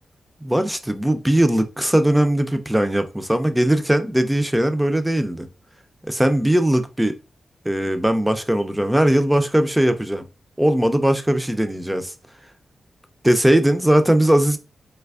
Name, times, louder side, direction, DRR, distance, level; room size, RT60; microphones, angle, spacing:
voice 1, 0.4-5.5 6.1-7.1 7.7-10.2 10.6-12.1 13.2-14.6, right 1 dB, 5° right, 0.4 m, -19 dB
3.2 x 3.2 x 2.3 m
wide cardioid pair, 110°, 0 cm